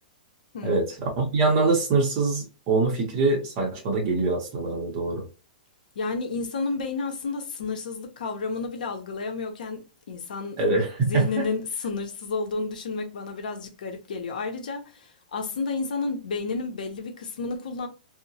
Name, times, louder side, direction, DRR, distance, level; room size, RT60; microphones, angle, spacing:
voice 1, 0.6-5.3 10.6-11.4, right 3 dB, 25° right, 0.7 m, -24 dB
voice 2, 6.0-10.6 11.0-17.9, left 4 dB, 70° left, 0.6 m, -31 dB
2.8 x 2.0 x 2.6 m
hypercardioid pair, 180°, 5 cm